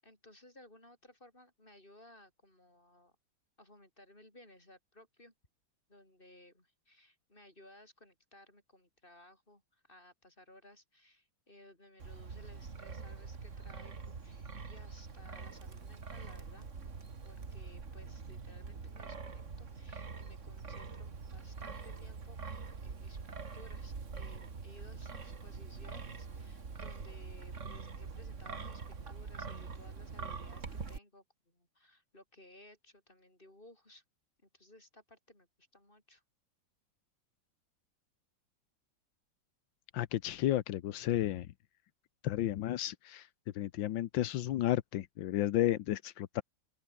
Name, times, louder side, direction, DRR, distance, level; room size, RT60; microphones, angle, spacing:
voice 1, 0.0-3.2 3.6-5.3 5.9-16.7 17.2-34.0 34.4-36.2, left 1 dB, 25° left, 7.4 m, -59 dB
Wind, 12.0-31.0, right 5 dB, 40° right, 2.3 m, -44 dB
voice 2, 39.9-41.5 42.2-43.3 43.5-46.4, left 13 dB, 85° left, 1.6 m, -32 dB
open air
omnidirectional pair, 2.0 m